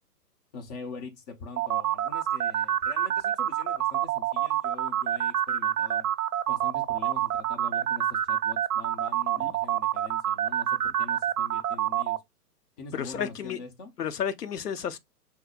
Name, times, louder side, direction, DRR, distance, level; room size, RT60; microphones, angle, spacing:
voice 1, 0.5-6.1 6.5-12.2 12.8-13.9, left 4 dB, 25° left, 0.9 m, -43 dB
sound 1, 1.6-12.2, right 11 dB, 70° right, 0.5 m, -27 dB
voice 2, 12.9-13.6 14.0-15.0, left 8 dB, 70° left, 0.8 m, -32 dB
6.0 x 2.1 x 2.5 m
figure-of-eight pair, 130°, 48 cm